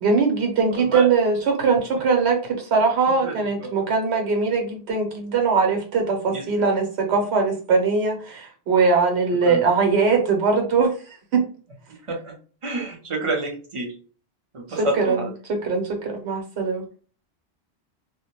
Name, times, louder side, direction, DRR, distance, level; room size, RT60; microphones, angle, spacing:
voice 1, 0.0-11.4 14.7-16.8, right 4 dB, 80° right, 2 dB, 1.1 m, -21 dB
voice 2, 0.8-1.1 3.2-3.3 3.6-3.7 6.3-6.4 9.4-9.6 12.1-12.3 12.6-13.9 14.5-15.3, right 2 dB, 35° right, 0 dB, 0.6 m, -28 dB
2.2 x 2.1 x 2.9 m, 0.39 s
omnidirectional pair, 1.1 m